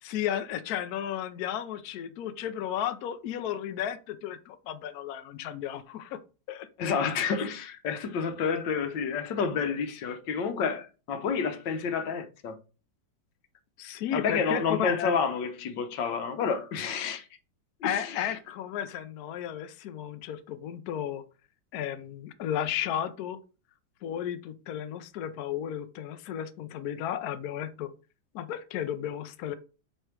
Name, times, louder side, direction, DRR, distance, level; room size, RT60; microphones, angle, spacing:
voice 1, 0.0-6.2 6.5-6.7 13.8-15.1 17.8-21.2 21.7-23.4 24.0-27.9 28.3-29.6, left 10 dB, 65° left, 1.0 m, -33 dB
voice 2, 6.8-12.6 14.1-17.3 17.8-18.2, left 6 dB, 85° left, 1.5 m, -29 dB
7.9 x 3.3 x 4.6 m
omnidirectional pair, 1.9 m